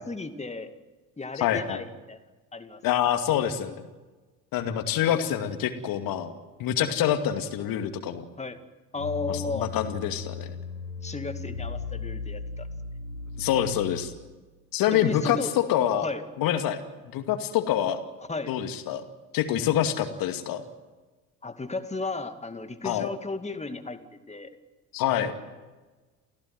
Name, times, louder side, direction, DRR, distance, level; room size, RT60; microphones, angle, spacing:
voice 1, 0.1-0.7 1.2-2.2 2.5-2.8 8.4-8.6 8.9-9.7 11.0-12.7 14.9-15.5 16.0-16.2 18.3-18.5 21.4-24.5, left 3 dB, 15° left, 9 dB, 2.3 m, -34 dB
voice 2, 1.4-1.8 2.8-3.8 4.5-6.3 6.6-8.2 9.3-10.5 13.4-14.1 14.7-16.1 16.4-18.0 18.5-19.0 19.3-20.6 22.8-23.1 24.9-25.3, left 10 dB, 50° left, 7 dB, 2.5 m, -26 dB
sound 1, 8.9-14.4, left 4 dB, 85° left, 1.0 m, -36 dB
29.0 x 16.5 x 9.5 m, 1.2 s
figure-of-eight pair, 60°, 44 cm